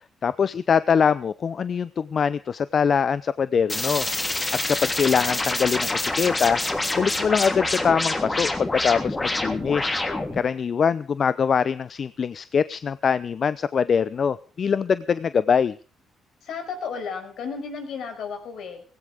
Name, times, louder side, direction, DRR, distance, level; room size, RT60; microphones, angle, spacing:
voice 1, 0.2-4.4 4.7-6.6 7.0-10.0 10.4-15.8, left 6 dB, 50° left, 16 dB, 0.6 m, -23 dB
sound 1, 3.7-10.4, left 2 dB, 20° left, 3.2 m, -26 dB
voice 2, 10.1-10.6 16.4-18.8, left 5 dB, 75° left, 5 dB, 5.5 m, -34 dB
18.0 x 17.0 x 3.6 m, 0.39 s
cardioid pair, 90°, 0 cm